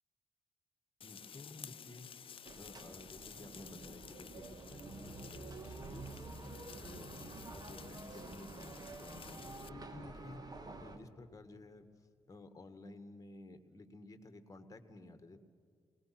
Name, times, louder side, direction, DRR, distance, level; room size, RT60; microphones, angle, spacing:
sound 1, 1.0-9.7, left 7 dB, 60° left, 0.7 m, -53 dB
voice 1, 1.0-2.1 2.6-7.1 7.5-10.4 10.8-11.9 12.3-15.4, left 2 dB, 35° left, 9 dB, 2.1 m, -54 dB
sound 2, 2.5-11.0, right 3 dB, 40° right, 2.1 m, -49 dB
23.5 x 19.5 x 6.1 m, 2.2 s
cardioid pair, 60°, 10 cm